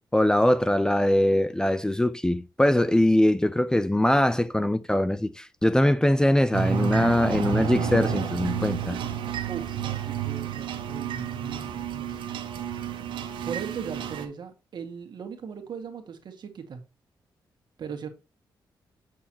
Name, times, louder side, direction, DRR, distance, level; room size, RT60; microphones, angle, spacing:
voice 1, 0.1-9.0, left 1 dB, 10° left, 0.4 m, -22 dB
sound 1, 6.5-14.3, right 7 dB, 85° right, 1.1 m, -30 dB
voice 2, 9.5-12.2 13.4-16.8 17.8-18.1, right 6 dB, 65° right, 1.8 m, -38 dB
7.5 x 6.3 x 2.9 m
cardioid pair, 90°, 8 cm